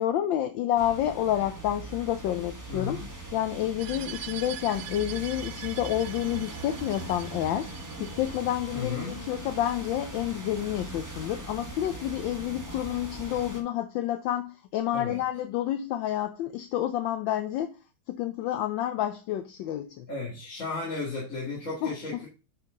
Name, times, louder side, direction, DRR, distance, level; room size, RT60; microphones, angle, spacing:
voice 1, 0.0-3.0 3.3-7.7 8.0-17.8 18.1-20.1 21.8-21.9, left 12 dB, 75° left, 1.2 m, -29 dB
sound 1, 0.8-13.6, right 2 dB, 10° right, 1.0 m, -40 dB
voice 2, 2.7-3.1 8.7-9.1 14.9-15.2 20.1-22.3, left 4 dB, 40° left, 2.4 m, -34 dB
sound 2, 3.8-8.8, right 12 dB, 70° right, 0.9 m, -43 dB
8.4 x 4.6 x 3.7 m
omnidirectional pair, 2.3 m